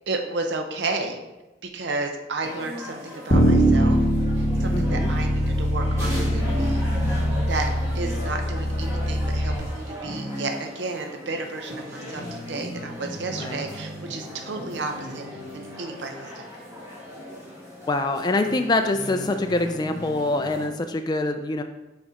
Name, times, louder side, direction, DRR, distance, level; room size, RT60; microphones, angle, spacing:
voice 1, 0.1-1.2 1.7-4.0 4.4-6.9 7.5-7.7 7.9-16.5, right 3 dB, 65° right, 4 dB, 0.6 m, -32 dB
sound 1, 2.4-20.7, equal, 15° right, 2.1 m, -36 dB
Bass guitar, 3.3-9.6, equal, 40° left, 1.1 m, -22 dB
voice 2, 4.7-5.1 13.4-13.6 17.9-21.6, left 2 dB, 20° left, 6 dB, 0.3 m, -25 dB
6.3 x 4.1 x 4.9 m, 1.0 s
head